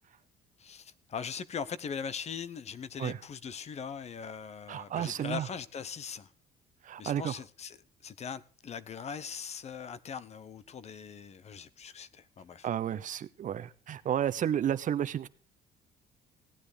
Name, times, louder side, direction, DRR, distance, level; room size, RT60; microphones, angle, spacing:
voice 1, 0.6-6.3 7.0-7.8 8.0-12.7, left 6 dB, 40° left, 0.9 m, -40 dB
voice 2, 4.7-5.5 6.8-7.3 12.6-15.3, right 10 dB, 50° right, 0.9 m, -32 dB
16.5 x 9.6 x 5.1 m
cardioid pair, 110°, 17 cm